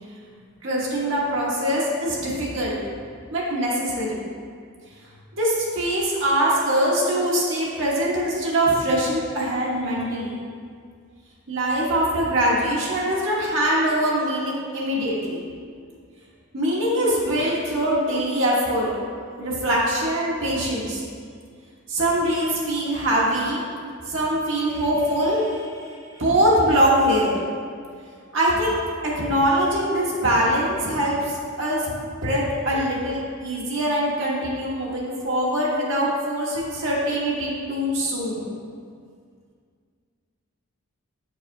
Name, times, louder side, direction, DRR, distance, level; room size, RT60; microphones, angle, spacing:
voice 1, 0.6-2.8 3.3-4.2 5.4-10.4 11.5-15.5 16.5-18.9 19.4-21.0 21.9-23.6 24.1-27.3 28.3-32.0 32.2-38.5, right 1 dB, 60° right, -5 dB, 1.1 m, -23 dB
8.0 x 4.7 x 2.6 m, 2.1 s
head